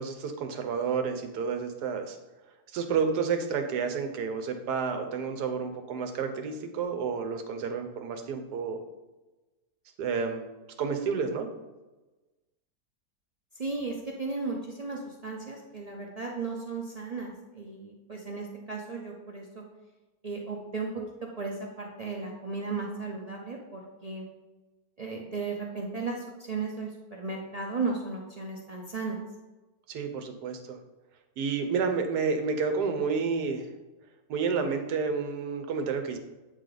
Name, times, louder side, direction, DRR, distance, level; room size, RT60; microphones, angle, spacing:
voice 1, 0.0-2.2 2.7-8.8 10.0-10.5 10.8-11.5 29.9-30.8 31.4-33.7 34.3-36.2, right 5 dB, 90° right, 7 dB, 1.3 m, -30 dB
voice 2, 13.6-19.6 20.2-20.9 21.4-24.3 25.0-29.2, right 4 dB, 60° right, -2 dB, 0.4 m, -35 dB
8.2 x 3.4 x 3.8 m, 1.1 s
omnidirectional pair, 1.7 m